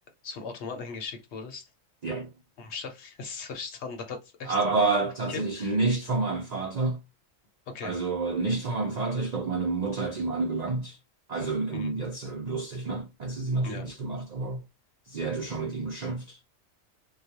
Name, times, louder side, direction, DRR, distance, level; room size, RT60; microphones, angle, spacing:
voice 1, 0.2-1.7 2.6-4.6 5.3-5.8 7.7-7.9 11.7-11.9 13.6-13.8, left 5 dB, 60° left, 1.0 m, -38 dB
voice 2, 4.5-7.0 7.8-11.0 11.3-14.6 15.1-16.4, right 3 dB, 60° right, 0.4 m, -29 dB
2.3 x 2.3 x 2.7 m
omnidirectional pair, 1.4 m